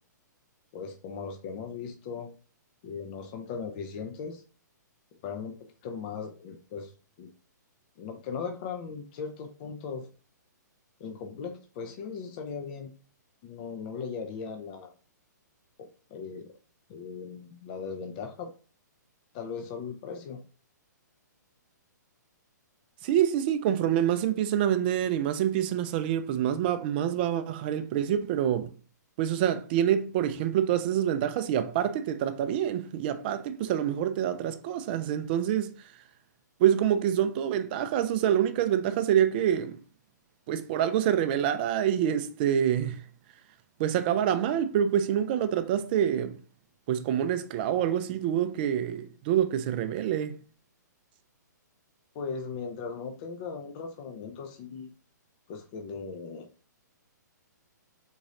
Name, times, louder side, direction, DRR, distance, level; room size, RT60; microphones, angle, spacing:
voice 1, 0.7-2.3 2.8-4.4 5.2-5.6 5.8-6.9 7.2-7.3 8.0-10.1 11.0-12.9 13.4-14.9 15.8-16.5 16.9-18.5 19.3-20.4 52.1-54.9 55.5-56.5, left 5 dB, 30° left, 0.4 m, -38 dB
voice 2, 23.0-28.7 29.2-35.9 36.6-39.8 40.5-43.1 43.8-46.4 46.9-50.4, right 10 dB, 30° right, 0.4 m, -26 dB
3.9 x 3.8 x 2.4 m
figure-of-eight pair, 120°, 10 cm